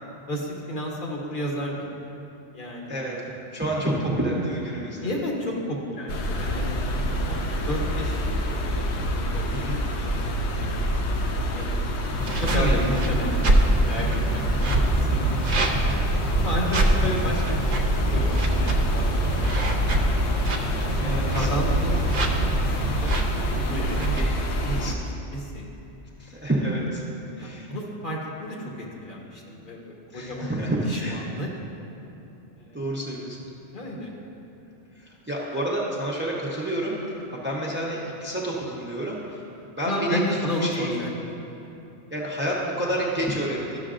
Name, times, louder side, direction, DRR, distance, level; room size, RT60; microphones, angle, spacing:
voice 1, 0.3-1.8 2.5-3.1 3.7-3.8 5.0-9.5 10.0-10.7 11.5-11.9 12.4-14.4 14.7-19.6 20.0-20.2 21.0-23.2 23.5-24.0 24.6-24.9 25.3-25.6 27.4-30.6 30.9-31.5 32.6-32.8 33.7-34.1 39.9-41.3, equal, 50° left, -2 dB, 1.2 m, -32 dB
voice 2, 3.5-5.1 9.5-9.8 12.5-13.0 17.0-17.1 20.9-21.5 24.1-24.4 24.7-24.9 26.2-27.0 27.4-27.7 30.1-31.2 32.7-33.5 34.9-37.0 37.3-39.4 39.8-40.9 42.1-43.8, right 1 dB, 15° right, -4 dB, 0.6 m, -29 dB
sound 1, 6.1-24.9, equal, 75° left, 0.9 m, -27 dB
sound 2, 12.2-24.3, right 1 dB, 50° right, 0.6 m, -25 dB
sound 3, 15.1-23.1, right 5 dB, 30° left, 0.5 m, -34 dB
12.5 x 6.4 x 2.5 m, 2.8 s
omnidirectional pair, 1.2 m